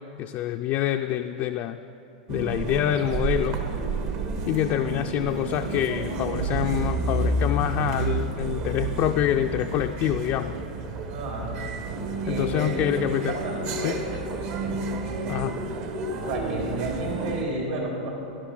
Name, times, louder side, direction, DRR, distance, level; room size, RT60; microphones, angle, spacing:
voice 1, 0.2-1.8 2.3-3.6 4.5-10.5 12.3-13.4 13.8-14.0 15.3-15.6, left 12 dB, 45° left, 5 dB, 0.3 m, -26 dB
sound 1, 2.3-17.4, right 2 dB, 50° right, 1.1 m, -30 dB
sound 2, 6.4-9.0, right 4 dB, 85° right, 2.7 m, -35 dB
voice 2, 11.1-11.5 12.2-14.0 16.3-18.1, right 2 dB, 70° right, -2 dB, 3.0 m, -31 dB
11.0 x 11.0 x 3.8 m, 2.7 s
hypercardioid pair, 105°, 4 cm